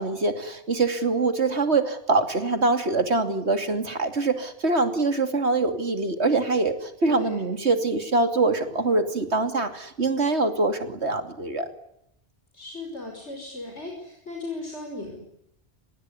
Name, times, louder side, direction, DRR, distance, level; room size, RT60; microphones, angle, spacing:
voice 1, 0.0-11.7, right 3 dB, 75° right, 9 dB, 3.0 m, -24 dB
voice 2, 7.1-7.4 12.5-15.2, left 2 dB, 80° left, 2 dB, 6.0 m, -36 dB
25.5 x 21.0 x 9.8 m, 0.79 s
omnidirectional pair, 1.1 m